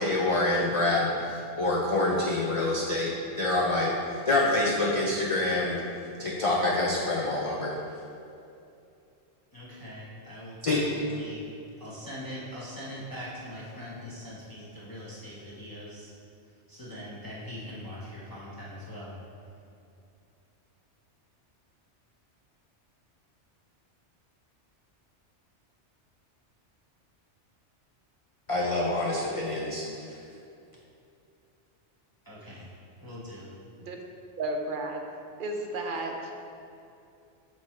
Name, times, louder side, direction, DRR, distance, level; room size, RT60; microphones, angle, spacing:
voice 1, 0.0-5.8 6.2-7.7 10.6-10.8 28.5-29.8, left 2 dB, 45° left, -4 dB, 0.4 m, -26 dB
voice 2, 9.5-11.4 11.8-16.1 16.7-19.2 32.2-32.7 33.0-33.5, equal, 20° left, -8 dB, 0.8 m, -42 dB
voice 3, 34.4-35.0 35.4-36.3, right 2 dB, 55° right, 2 dB, 0.7 m, -33 dB
7.7 x 3.0 x 4.3 m, 2.6 s
omnidirectional pair, 1.2 m